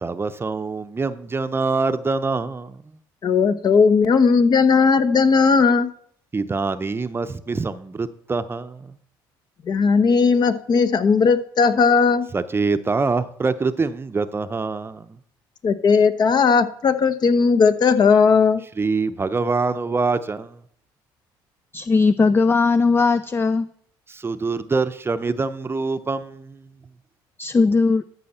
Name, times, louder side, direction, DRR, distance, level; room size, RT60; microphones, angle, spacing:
voice 1, 0.0-3.0 6.3-9.0 12.3-15.2 18.8-20.6 24.1-26.7, right 4 dB, 25° right, 11 dB, 0.7 m, -25 dB
voice 2, 3.2-5.9 9.7-12.3 15.6-18.6, left 5 dB, 45° left, 11 dB, 0.9 m, -17 dB
voice 3, 21.7-23.7 27.4-28.0, left 4 dB, 25° left, 14 dB, 0.4 m, -18 dB
13.0 x 6.3 x 4.3 m, 0.63 s
supercardioid pair, 80°, 10 cm